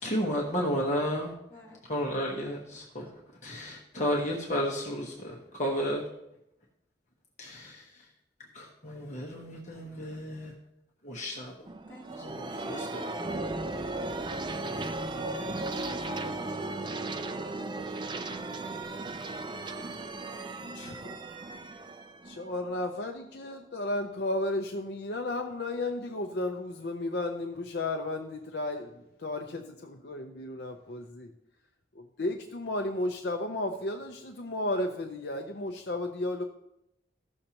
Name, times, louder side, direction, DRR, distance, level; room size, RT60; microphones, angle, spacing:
voice 1, 0.0-1.3 1.9-3.1 3.4-6.0 7.4-8.0 8.5-10.5 11.0-11.7 12.1-13.1, equal, 40° left, -2 dB, 1.2 m, -33 dB
voice 2, 1.5-1.9 11.9-12.4 15.7-17.0, equal, 10° left, -8 dB, 2.6 m, -49 dB
sound 1, 11.7-23.2, right 2 dB, 25° right, 0.4 m, -36 dB
voice 3, 20.7-21.2 22.2-31.3 31.9-36.4, left 2 dB, 60° left, 4 dB, 0.6 m, -33 dB
15.0 x 6.6 x 2.9 m, 0.83 s
head